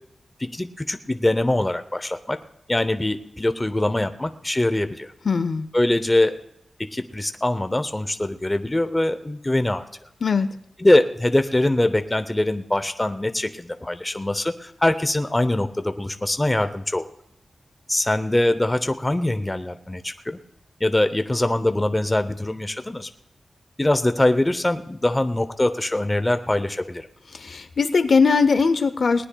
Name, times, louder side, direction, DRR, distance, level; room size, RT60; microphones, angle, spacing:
voice 1, 0.4-2.4 2.7-5.1 5.7-6.4 6.8-9.8 10.8-17.1 17.9-20.4 20.8-23.1 23.8-27.1, left 1 dB, 15° left, 10 dB, 0.6 m, -23 dB
voice 2, 5.2-5.7 10.2-10.5 27.3-29.3, left 5 dB, 60° left, 13 dB, 0.5 m, -20 dB
20.0 x 19.0 x 2.3 m, 0.75 s
wide cardioid pair, 130°, 0 cm